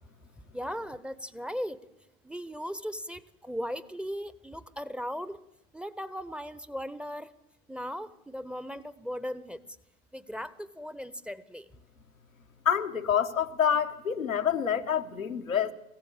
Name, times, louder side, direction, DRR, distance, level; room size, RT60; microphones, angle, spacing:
voice 1, 0.5-1.8 2.2-5.4 5.7-7.3 7.7-9.6 10.1-11.7, equal, 5° right, 0.8 m, -37 dB
voice 2, 12.6-15.7, left 8 dB, 85° left, 1.3 m, -27 dB
23.5 x 15.5 x 7.3 m
figure-of-eight pair, 85°, 40 cm